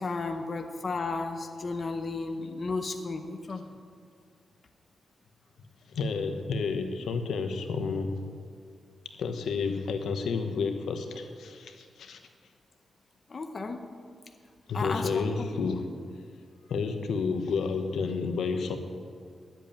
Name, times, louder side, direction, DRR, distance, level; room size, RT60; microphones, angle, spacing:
voice 1, 0.0-3.6 13.3-13.8 14.7-15.2, left 3 dB, 35° left, 5 dB, 0.8 m, -33 dB
voice 2, 5.9-8.2 9.2-12.2 14.7-15.8 16.7-18.8, left 4 dB, 85° left, 6 dB, 1.1 m, -30 dB
10.5 x 8.2 x 8.8 m, 2.2 s
wide cardioid pair, 150°, 0 cm